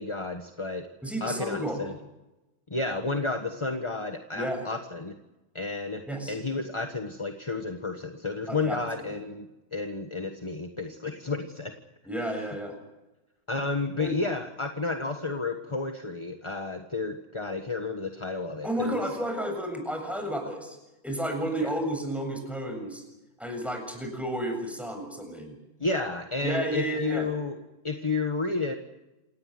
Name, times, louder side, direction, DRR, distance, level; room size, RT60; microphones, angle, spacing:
voice 1, 0.0-0.9 1.2-1.9 2.7-5.1 5.5-6.0 6.3-11.7 13.5-19.0 21.6-21.7 25.8-27.6 27.8-28.7, left 3 dB, 15° left, 5 dB, 1.2 m, -31 dB
voice 2, 1.0-1.9 4.3-4.7 6.1-6.4 8.5-8.8 12.0-12.7 14.0-14.3 18.6-20.8 21.0-23.0 23.4-25.6 26.4-27.3, right 1 dB, ahead, 4 dB, 7.3 m, -32 dB
28.0 x 18.0 x 7.9 m, 0.99 s
omnidirectional pair, 2.3 m